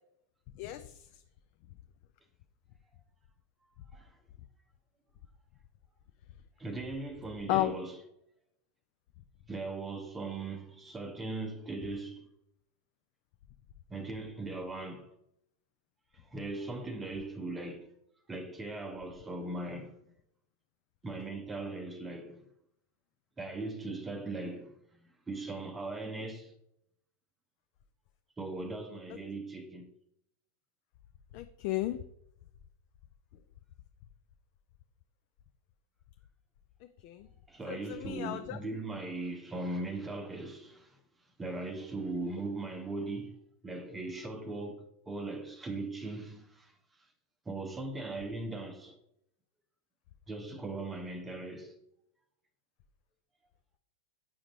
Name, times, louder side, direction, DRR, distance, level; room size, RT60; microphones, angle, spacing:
voice 1, 0.6-1.2 7.5-7.7 31.3-32.0 37.0-37.3 37.7-38.6, left 15 dB, 45° left, 0.3 m, -33 dB
voice 2, 6.6-8.0 9.5-12.3 13.9-15.1 16.1-17.9 18.3-20.1 21.0-22.4 23.4-24.8 25.3-26.5 28.4-29.9 37.5-41.0 41.4-47.1 47.5-49.0 50.3-51.8, right 2 dB, 15° right, 0.7 m, -39 dB
8.4 x 5.0 x 3.0 m
figure-of-eight pair, 90°, 0 cm